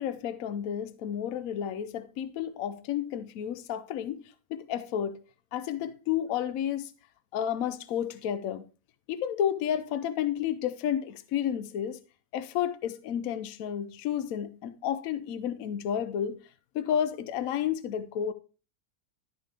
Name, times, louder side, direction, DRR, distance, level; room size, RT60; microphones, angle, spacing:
voice 1, 0.0-5.2 5.5-6.9 7.3-8.6 9.1-12.0 12.3-16.4 16.7-18.3, left 9 dB, 75° left, 1.0 m, -31 dB
11.5 x 5.8 x 3.3 m
omnidirectional pair, 1.5 m